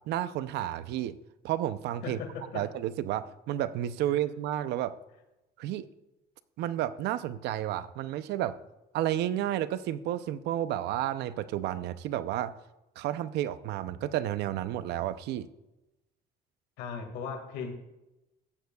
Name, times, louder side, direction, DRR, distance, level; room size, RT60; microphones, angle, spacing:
voice 1, 0.1-1.2 1.4-2.2 2.5-5.0 5.6-5.9 6.6-8.6 8.9-12.5 13.0-15.5, right 12 dB, 80° right, 14 dB, 0.6 m, -31 dB
voice 2, 2.0-2.7 16.8-17.7, left 6 dB, 90° left, 4 dB, 2.0 m, -37 dB
14.5 x 9.3 x 2.3 m, 0.95 s
cardioid pair, 110°, 17 cm